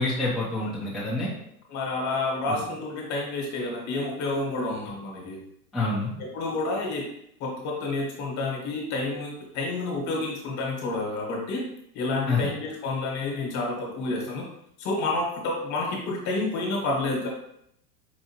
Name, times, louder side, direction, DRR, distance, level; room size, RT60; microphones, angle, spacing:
voice 1, 0.0-1.3 2.5-2.6 5.7-6.1 12.3-12.5, left 2 dB, ahead, -9 dB, 0.8 m, -27 dB
voice 2, 1.7-5.4 6.2-7.0 7.4-11.6 11.9-14.5 14.8-17.3, left 2 dB, 35° left, -1 dB, 1.4 m, -29 dB
5.0 x 2.6 x 2.9 m, 0.73 s
hypercardioid pair, 120°, 46 cm